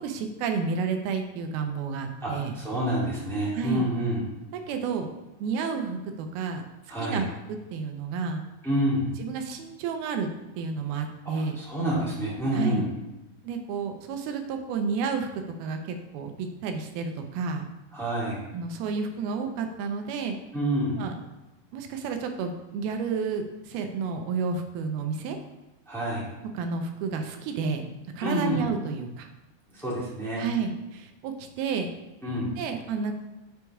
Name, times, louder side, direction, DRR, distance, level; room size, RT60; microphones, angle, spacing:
voice 1, 0.0-2.5 3.5-3.9 4.7-5.1 5.4-6.6 7.0-8.5 9.2-10.3 10.6-11.6 12.5-12.8 13.4-15.3 15.6-17.7 18.5-20.4 21.0-21.2 21.7-25.4 26.5-29.3 30.4-31.9 32.6-33.1, right 5 dB, 85° right, 5 dB, 2.7 m, -31 dB
voice 2, 2.2-4.2 6.9-7.2 8.6-9.2 11.6-12.9 17.9-18.4 20.5-21.0 25.9-26.3 28.2-28.6 29.7-30.5 32.2-32.5, equal, ahead, -7 dB, 0.6 m, -28 dB
6.7 x 4.6 x 4.7 m, 1.0 s
omnidirectional pair, 4.3 m